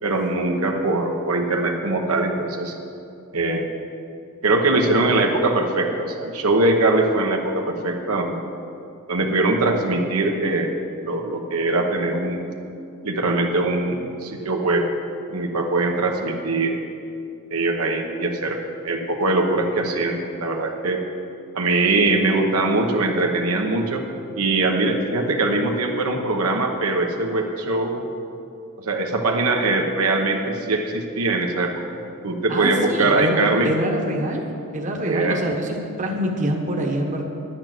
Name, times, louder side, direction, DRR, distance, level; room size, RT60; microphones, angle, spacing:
voice 1, 0.0-2.7 3.3-3.7 4.4-8.4 9.1-12.5 13.0-14.8 15.3-16.8 17.5-21.0 21.5-24.0 24.4-28.1 28.8-32.0 32.2-33.7 35.0-35.4, right 2 dB, 85° right, 2 dB, 1.1 m, -22 dB
voice 2, 32.5-34.4 34.7-37.2, right 1 dB, 35° right, 2 dB, 1.1 m, -25 dB
10.5 x 8.8 x 6.1 m, 2.6 s
head